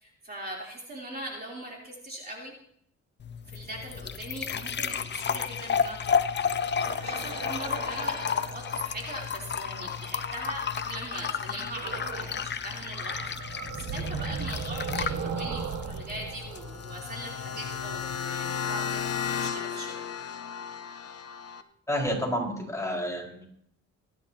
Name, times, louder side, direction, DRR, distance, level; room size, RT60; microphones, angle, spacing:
voice 1, 0.0-2.5 3.5-6.2 6.5-19.9, right 1 dB, 30° right, -2 dB, 3.4 m, -41 dB
sound 1, 3.2-18.2, left 7 dB, 35° left, 0.8 m, -32 dB
sound 2, 6.8-10.6 11.7-12.5 12.8-17.6, right 5 dB, 70° right, 1.7 m, -38 dB
sound 3, 16.6-21.6, left 7 dB, 55° left, 1.1 m, -34 dB
voice 2, 21.9-23.5, equal, 10° left, -2 dB, 4.7 m, -30 dB
24.0 x 10.5 x 2.9 m, 0.69 s
cardioid pair, 90°, 30 cm